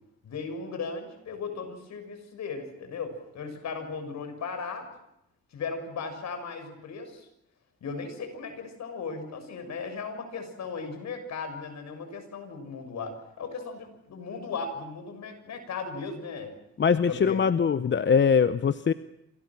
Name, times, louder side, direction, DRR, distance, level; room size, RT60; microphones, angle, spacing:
voice 1, 0.2-4.9 5.5-7.3 7.8-16.6 17.0-17.4, left 4 dB, 65° left, 7 dB, 6.8 m, -37 dB
voice 2, 16.8-18.9, left 6 dB, 40° left, 12 dB, 1.0 m, -22 dB
28.5 x 27.0 x 6.2 m, 0.80 s
cardioid pair, 90°, 30 cm